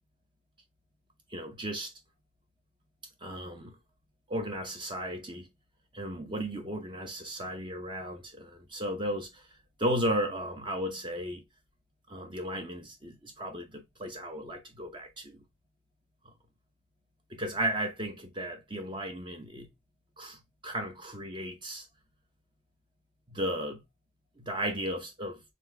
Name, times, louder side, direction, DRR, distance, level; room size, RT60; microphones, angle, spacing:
voice 1, 1.3-1.9 3.2-3.8 4.3-5.5 5.9-9.5 9.8-11.4 12.1-15.4 16.2-16.3 17.3-19.7 20.2-21.9 23.3-23.8 24.4-25.4, equal, 25° right, 0.8 m, -35 dB
4.3 x 3.5 x 3.3 m
head